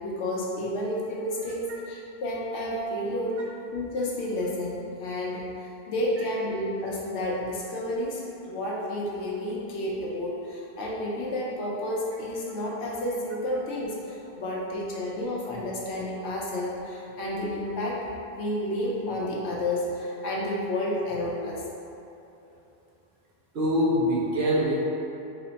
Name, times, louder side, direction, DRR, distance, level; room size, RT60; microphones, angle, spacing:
voice 1, 0.0-3.4 3.7-18.0 18.3-21.6, left 1 dB, 90° left, -4 dB, 0.9 m, -31 dB
voice 2, 23.5-24.8, equal, 70° right, -4 dB, 0.9 m, -24 dB
3.1 x 2.1 x 3.9 m, 2.9 s
omnidirectional pair, 1.1 m